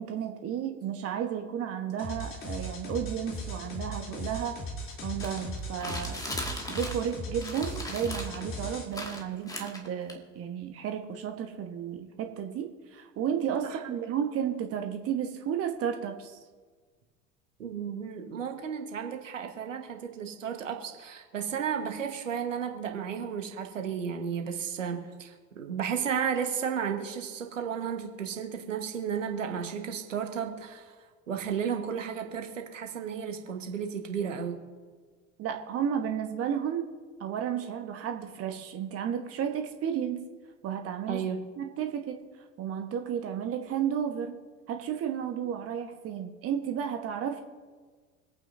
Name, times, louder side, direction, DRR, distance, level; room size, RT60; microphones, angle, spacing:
voice 1, 0.0-4.5 5.0-6.3 6.7-16.4 35.4-36.9 37.2-40.2 40.6-41.2 41.6-42.2 42.6-44.3 44.7-47.4, right 8 dB, 35° right, 5 dB, 1.3 m, -33 dB
sound 1, 2.0-8.8, left 1 dB, 35° left, 3.3 m, -38 dB
sound 2, 5.2-7.1 7.4-8.4 8.9-10.1, left 1 dB, 10° left, 2.1 m, -38 dB
voice 2, 13.6-13.9 17.6-30.9 31.3-34.6 41.1-41.4, right 7 dB, 75° right, 4 dB, 1.5 m, -33 dB
26.0 x 9.0 x 2.7 m, 1.5 s
figure-of-eight pair, 70°, 39 cm